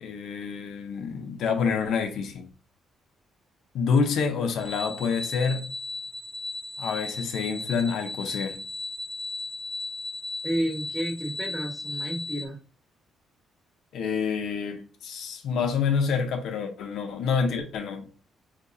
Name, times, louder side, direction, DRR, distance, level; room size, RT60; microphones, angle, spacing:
voice 1, 0.0-2.5 3.7-5.6 6.8-8.6 13.9-18.1, left 5 dB, 80° left, 0.7 m, -27 dB
sound 1, 4.6-12.5, left 2 dB, 10° left, 0.9 m, -36 dB
voice 2, 10.4-12.6, right 1 dB, 15° right, 1.3 m, -31 dB
4.2 x 2.9 x 2.6 m
cardioid pair, 90°, 0 cm